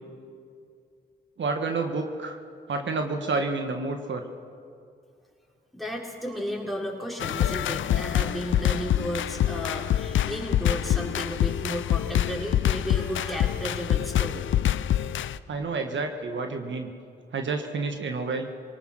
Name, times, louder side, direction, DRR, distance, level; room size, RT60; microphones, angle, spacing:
voice 1, 1.4-2.4 2.7-4.2 15.5-16.9 17.3-18.5, right 3 dB, 65° right, 5 dB, 1.5 m, -29 dB
voice 2, 5.7-14.4, equal, ahead, -2 dB, 4.9 m, -33 dB
sound 1, 7.2-15.4, left 11 dB, 75° left, 0.5 m, -26 dB
23.0 x 18.5 x 6.4 m, 2.4 s
supercardioid pair, 45°, 20 cm